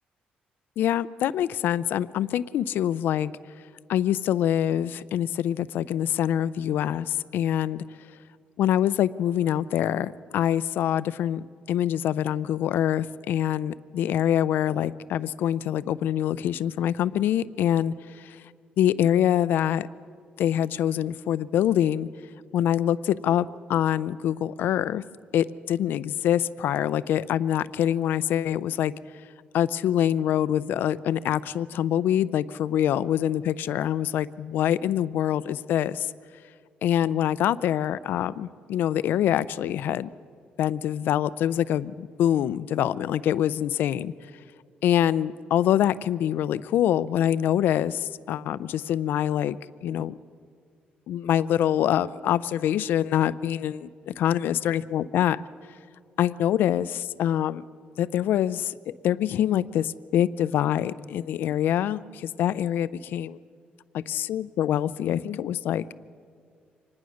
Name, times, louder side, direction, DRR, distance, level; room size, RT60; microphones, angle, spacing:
voice 1, 0.8-3.3 3.9-7.8 8.6-18.4 18.8-19.9 20.4-22.1 22.5-25.0 25.3-28.9 29.5-36.1 36.8-40.1 40.6-44.1 44.8-50.2 51.1-55.4 56.2-57.6 58.0-63.4 63.9-65.9, left 10 dB, 80° left, 17 dB, 0.5 m, -25 dB
25.0 x 19.5 x 6.4 m, 2.1 s
cardioid pair, 150°, 3 cm